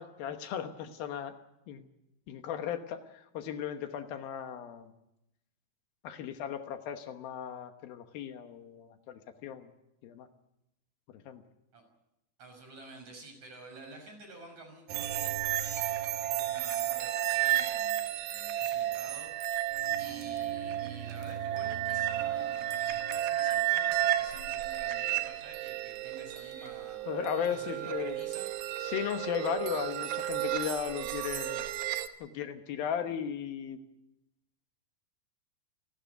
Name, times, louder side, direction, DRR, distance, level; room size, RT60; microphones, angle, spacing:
voice 1, 0.0-1.3 1.7-1.9 2.3-4.9 6.0-9.7 10.0-10.3 11.3-11.4 27.1-28.2 28.8-31.6 32.2-33.8, left 9 dB, 75° left, 8 dB, 3.0 m, -36 dB
voice 2, 12.4-19.7 20.0-27.0 27.5-28.5, right 2 dB, 50° right, 3 dB, 7.2 m, -51 dB
sound 1, 14.9-32.1, right 13 dB, 80° right, 2.9 m, -32 dB
28.5 x 12.5 x 9.2 m, 0.86 s
omnidirectional pair, 4.4 m